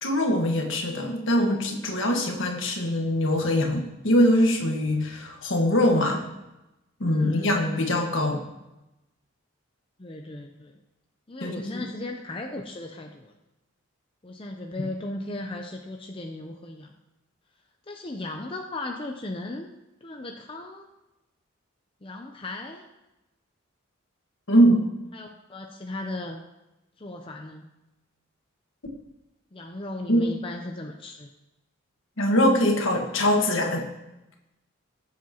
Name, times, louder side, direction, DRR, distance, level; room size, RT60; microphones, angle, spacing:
voice 1, 0.0-6.2 7.0-8.4 11.4-11.9 24.5-24.8 30.1-30.2 32.2-33.9, equal, 70° left, 2 dB, 1.5 m, -22 dB
voice 2, 7.1-7.6 10.0-10.8 11.3-13.3 14.2-16.9 17.9-19.7 20.0-20.9 22.0-22.9 25.1-26.4 27.0-27.7 29.5-31.3, left 2 dB, 25° left, 2 dB, 0.6 m, -36 dB
19.0 x 7.6 x 2.9 m, 0.97 s
head